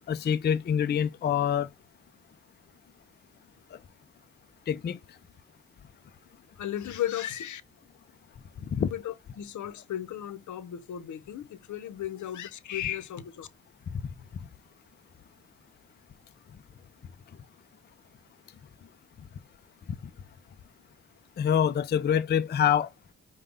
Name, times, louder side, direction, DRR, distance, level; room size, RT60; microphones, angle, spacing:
voice 1, 0.1-1.7 4.7-5.0 8.6-8.9 13.9-14.0 21.4-22.9, left 8 dB, 35° left, 0.4 m, -25 dB
voice 2, 6.6-7.6 8.9-13.5, left 11 dB, 70° left, 0.7 m, -35 dB
5.2 x 2.2 x 3.4 m
cardioid pair, 85°, 30 cm